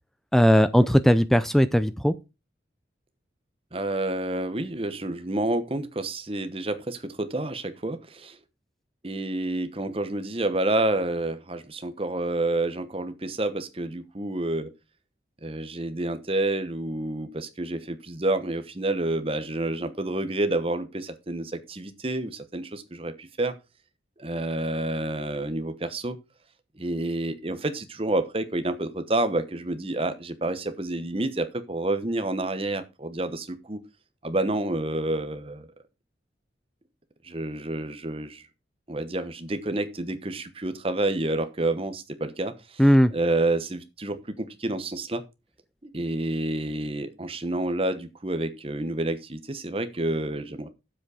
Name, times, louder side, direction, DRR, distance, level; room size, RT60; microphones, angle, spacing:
voice 1, 0.3-2.1 42.8-43.1, equal, ahead, 0.4 m, -18 dB
voice 2, 3.7-8.4 9.0-14.7 15.4-23.5 24.2-26.2 26.8-33.8 34.2-35.7 37.2-38.4 38.9-42.8 43.1-45.2 45.8-50.7, right 2 dB, 30° right, 1.0 m, -29 dB
7.6 x 7.2 x 4.9 m
head